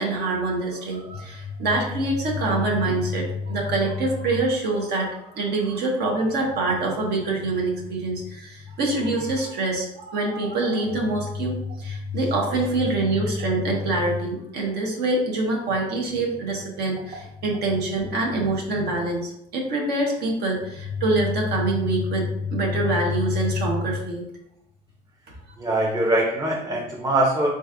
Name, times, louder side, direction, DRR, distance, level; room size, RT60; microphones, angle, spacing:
voice 1, 0.0-24.2, right 1 dB, 70° right, -1 dB, 1.1 m, -25 dB
voice 2, 25.6-27.5, right 1 dB, 20° right, -2 dB, 0.7 m, -22 dB
4.0 x 3.8 x 2.5 m, 0.79 s
cardioid pair, 110°, 17 cm